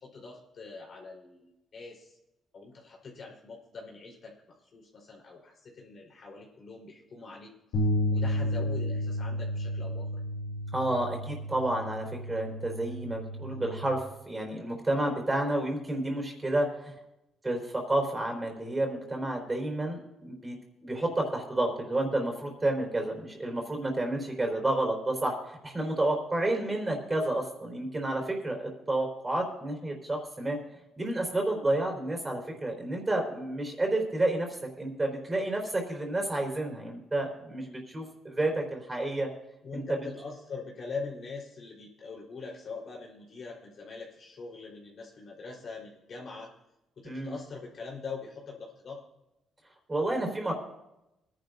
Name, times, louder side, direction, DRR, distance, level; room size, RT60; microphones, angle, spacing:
voice 1, 0.0-2.1 2.5-7.5 8.1-10.1 13.4-13.7 39.6-46.5 47.0-49.0, left 4 dB, 55° left, -1 dB, 4.1 m, -43 dB
sound 1, 7.7-14.0, left 1 dB, 85° left, 2.2 m, -32 dB
voice 2, 10.7-16.9 17.4-20.6 20.8-30.6 31.0-39.3 39.7-39.8 47.0-47.3 49.9-50.5, right 1 dB, 20° right, 1 dB, 4.2 m, -30 dB
24.0 x 11.0 x 2.7 m, 0.91 s
cardioid pair, 90°, 0 cm